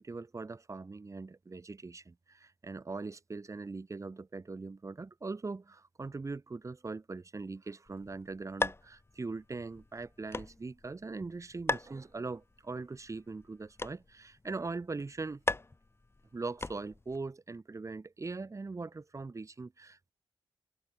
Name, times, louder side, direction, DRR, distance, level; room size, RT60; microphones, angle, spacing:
voice 1, 0.0-15.4 16.3-20.1, right 3 dB, 35° right, 4.4 m, -41 dB
sound 1, 7.9-17.2, left 3 dB, 25° left, 7.0 m, -40 dB
wide cardioid pair, 90°, 9 cm